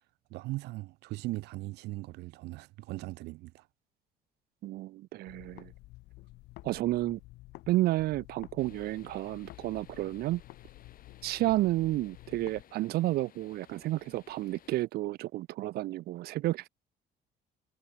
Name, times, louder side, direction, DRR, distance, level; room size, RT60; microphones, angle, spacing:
voice 1, 0.3-3.7, right 20 dB, 85° right, 0.9 m, -39 dB
voice 2, 4.6-5.7 6.6-7.2 7.7-10.4 11.2-16.7, right 16 dB, 65° right, 0.5 m, -31 dB
sound 1, 5.3-7.7 8.0-12.6, left 20 dB, 85° left, 0.7 m, -51 dB
sound 2, 8.6-14.9, left 10 dB, 55° left, 6.5 m, -59 dB
cardioid pair, 110°, 17 cm